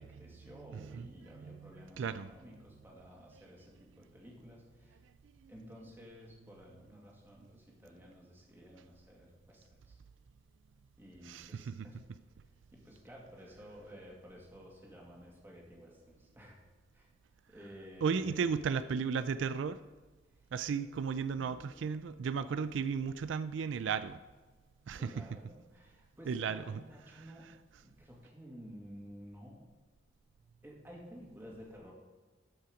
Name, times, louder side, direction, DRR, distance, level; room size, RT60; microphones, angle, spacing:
voice 1, 0.0-5.0 5.5-10.0 11.0-12.0 12.4-16.6 16.9-17.1 17.5-18.5 20.2-20.5 21.3-22.0 25.0-27.5 27.8-29.7 30.6-31.9, equal, 10° right, -3 dB, 2.1 m, -53 dB
voice 2, 0.7-1.1 1.4-1.7 2.0-2.3 5.4-5.5 11.2-11.9 18.0-19.8 20.5-24.2 24.9-25.1 26.3-26.8, right 6 dB, 75° right, 13 dB, 0.3 m, -34 dB
13.0 x 5.6 x 5.0 m, 1.3 s
head